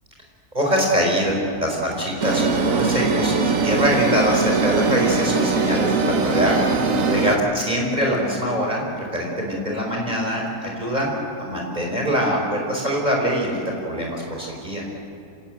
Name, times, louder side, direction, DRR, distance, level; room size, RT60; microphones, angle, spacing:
voice 1, 0.5-11.1 11.4-13.6 13.8-14.8, equal, 25° right, -1 dB, 5.0 m, -23 dB
sound 1, 2.2-7.4, right 4 dB, 55° right, 1.7 m, -21 dB
27.0 x 17.5 x 9.1 m, 2.7 s
omnidirectional pair, 1.7 m